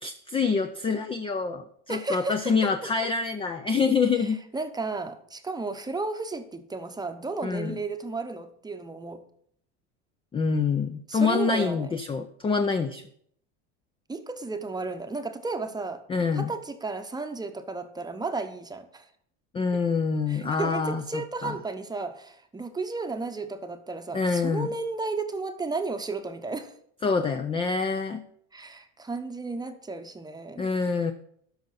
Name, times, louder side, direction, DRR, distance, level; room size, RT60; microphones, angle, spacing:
voice 1, 0.0-4.4 7.4-7.8 10.3-13.0 16.1-16.5 19.5-21.6 24.1-24.7 27.0-28.2 30.6-31.1, left 5 dB, 15° left, 8 dB, 0.4 m, -26 dB
voice 2, 1.9-3.1 4.5-9.2 11.1-11.9 14.1-16.0 16.3-19.1 20.3-26.7 28.5-30.7, right 3 dB, 10° right, 7 dB, 0.8 m, -33 dB
12.5 x 5.3 x 4.1 m, 0.67 s
supercardioid pair, 115°, 38 cm